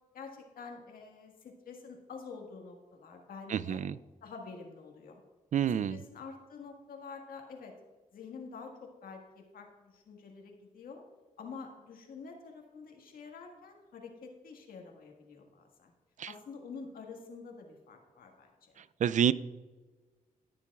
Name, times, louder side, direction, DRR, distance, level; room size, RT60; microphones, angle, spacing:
voice 1, 0.1-3.8 4.2-5.2 5.9-7.7 8.1-11.0 11.4-15.9 16.2-18.8, left 5 dB, 85° left, 2 dB, 1.7 m, -48 dB
voice 2, 3.5-4.0 5.5-6.0 16.2-16.3 19.0-19.3, right 9 dB, 60° right, 16 dB, 0.4 m, -28 dB
18.0 x 7.0 x 2.4 m, 1.3 s
cardioid pair, 75°, 15 cm